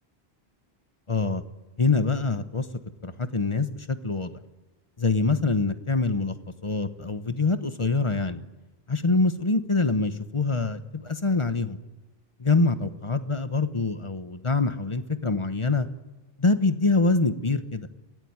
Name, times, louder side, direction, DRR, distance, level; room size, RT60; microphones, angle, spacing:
voice 1, 1.1-1.4 1.8-2.6 3.0-4.3 5.0-6.3 6.6-8.4 8.9-11.8 12.4-15.9 16.4-17.9, left 3 dB, 30° left, 10 dB, 1.1 m, -25 dB
24.5 x 16.0 x 9.6 m, 1.1 s
omnidirectional pair, 1.1 m